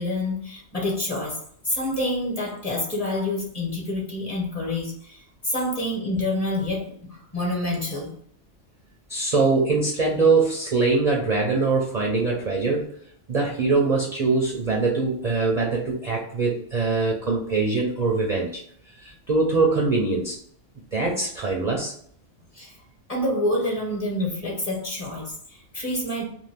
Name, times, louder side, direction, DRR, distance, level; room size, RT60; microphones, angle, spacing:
voice 1, 0.0-1.4 1.6-8.1 22.5-22.7 23.1-26.2, left 1 dB, 35° left, -3 dB, 1.1 m, -27 dB
voice 2, 9.1-12.9 13.3-18.6 19.0-20.4 20.9-21.9, right 3 dB, 50° right, -1 dB, 0.5 m, -23 dB
2.6 x 2.5 x 3.3 m, 0.64 s
omnidirectional pair, 1.3 m